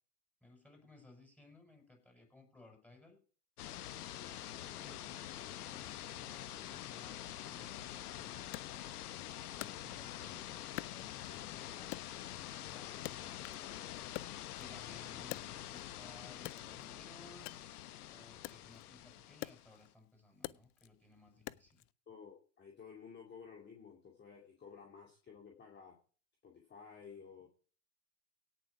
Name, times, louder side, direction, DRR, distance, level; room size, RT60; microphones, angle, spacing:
voice 1, 0.4-3.2 4.5-8.7 9.5-12.0 12.5-13.4 14.6-17.8 18.1-21.8, left 2 dB, 5° left, 4 dB, 6.4 m, -60 dB
sound 1, 3.6-19.9, left 12 dB, 70° left, 1.1 m, -46 dB
Wood, 8.5-10.3 10.8-11.5 11.9-13.7 14.0-16.0 16.4-21.9, left 21 dB, 40° left, 0.5 m, -48 dB
voice 2, 22.1-26.0 26.4-27.5, left 6 dB, 20° left, 1 dB, 2.5 m, -54 dB
17.5 x 7.1 x 4.9 m, 0.41 s
hypercardioid pair, 100°, 47 cm